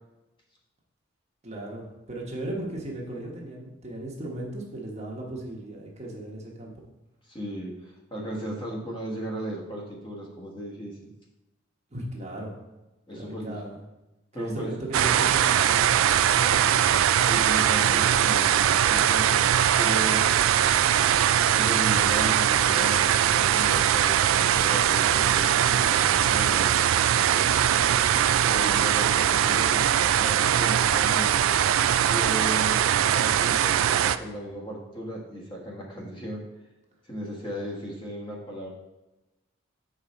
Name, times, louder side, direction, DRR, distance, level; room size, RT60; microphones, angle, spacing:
voice 1, 1.4-6.7 11.9-12.5 13.1-13.8 14.3-16.0 16.3-16.6 27.3-27.8 28.6-28.9, right 1 dB, 35° right, -2 dB, 1.2 m, -37 dB
voice 2, 7.3-11.1 13.1-13.5 14.3-14.7 17.2-19.4 19.7-20.3 21.5-26.7 28.4-31.5 32.0-32.8 33.1-36.4 37.1-38.7, right 1 dB, 25° left, -3 dB, 1.3 m, -36 dB
sound 1, 14.9-34.2, right 10 dB, 80° right, 0.3 m, -21 dB
7.0 x 5.0 x 4.2 m, 1.0 s
head